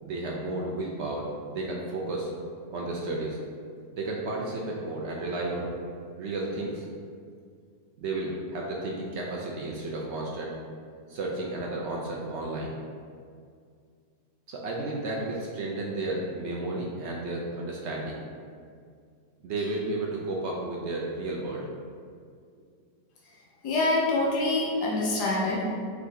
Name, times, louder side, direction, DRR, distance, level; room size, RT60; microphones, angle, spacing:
voice 1, 0.0-2.3 2.7-3.4 3.9-5.7 6.2-6.8 8.0-10.5 11.1-12.7 14.5-18.2 19.4-21.7, right 2 dB, 75° right, -2 dB, 0.6 m, -32 dB
voice 2, 23.6-25.7, left 2 dB, 90° left, -5 dB, 1.4 m, -25 dB
3.9 x 3.6 x 3.4 m, 2.2 s
omnidirectional pair, 1.7 m